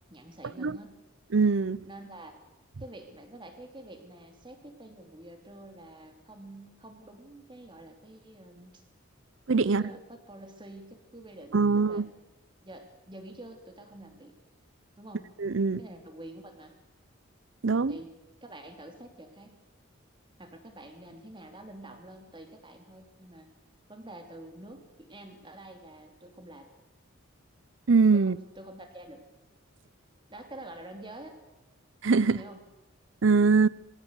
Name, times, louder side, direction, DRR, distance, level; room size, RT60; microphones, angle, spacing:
voice 1, 0.1-1.0 1.8-2.4 2.8-8.8 9.6-12.1 12.6-14.4 15.0-15.3 15.8-16.8 17.9-18.1 18.4-19.5 20.4-23.5 23.9-26.7 28.1-29.2 30.3-31.4 32.3-32.6, right 1 dB, 20° right, 2.9 m, -47 dB
voice 2, 1.3-1.8 9.5-9.8 11.5-12.1 15.4-15.8 17.6-18.0 27.9-28.4 32.0-32.4 33.2-33.7, right 4 dB, 65° right, 0.6 m, -22 dB
22.0 x 16.0 x 8.2 m
head